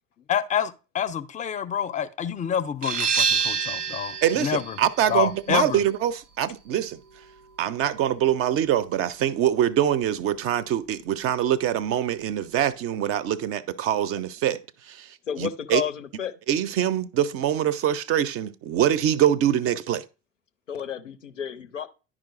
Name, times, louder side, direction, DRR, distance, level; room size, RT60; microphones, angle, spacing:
voice 1, 0.3-4.8 5.1-5.8, left 8 dB, 20° left, 0.4 m, -27 dB
sound 1, 2.8-8.2, right 6 dB, 80° right, 0.7 m, -29 dB
voice 2, 4.2-7.0 7.6-15.8 16.5-20.1, right 10 dB, 40° right, 0.4 m, -24 dB
voice 3, 15.3-16.3 20.7-21.9, left 8 dB, 85° left, 0.5 m, -31 dB
10.5 x 4.9 x 2.4 m
figure-of-eight pair, 55°, 36 cm